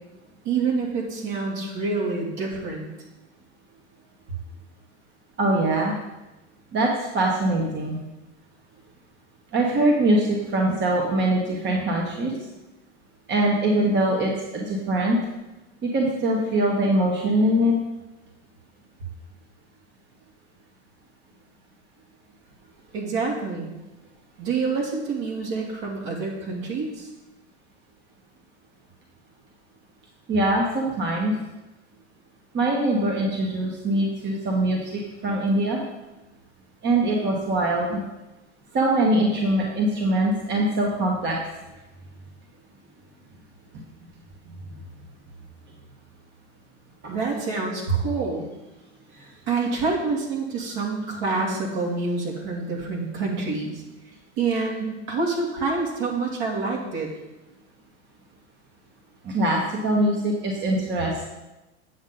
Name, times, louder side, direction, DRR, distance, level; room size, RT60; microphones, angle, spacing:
voice 1, 0.4-2.9 22.9-23.7 24.4-27.1 47.1-48.4 49.2-53.8 54.4-57.1, right 4 dB, 55° right, -2 dB, 2.9 m, -27 dB
voice 2, 5.4-5.9 6.7-8.0 9.5-12.3 13.3-15.2 15.9-17.7 30.3-31.3 32.5-35.8 36.8-38.0 38.7-41.4 44.7-44.8 59.2-61.2, right 1 dB, 30° right, -1 dB, 1.5 m, -22 dB
8.6 x 7.4 x 4.0 m, 1.0 s
hypercardioid pair, 105°, 35 cm